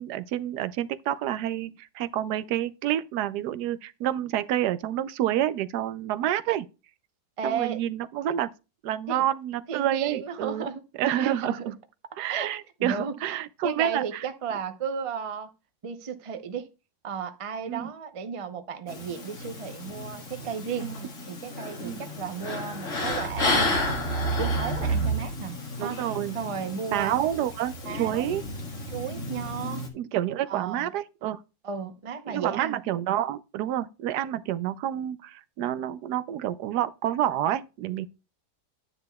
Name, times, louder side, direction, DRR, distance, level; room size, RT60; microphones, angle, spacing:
voice 1, 0.0-6.7 7.4-8.5 8.8-10.7 11.0-11.7 12.2-14.3 17.7-17.9 20.8-20.9 21.8-22.1 25.8-26.4 26.9-28.4 29.9-31.4 32.3-38.1, right 11 dB, 80° right, 1.1 m, -28 dB
voice 2, 7.4-7.8 9.1-9.2 9.7-10.8 11.2-11.7 12.3-12.5 12.8-13.3 13.6-15.5 15.8-16.7 17.0-20.9 21.2-26.0 26.3-27.2 27.8-28.3 28.9-29.8 30.5-30.9 31.6-32.8, right 6 dB, 45° right, 0.4 m, -34 dB
sound 1, 18.9-29.9, equal, 50° left, 1.9 m, -31 dB
9.8 x 9.5 x 2.3 m
omnidirectional pair, 1.7 m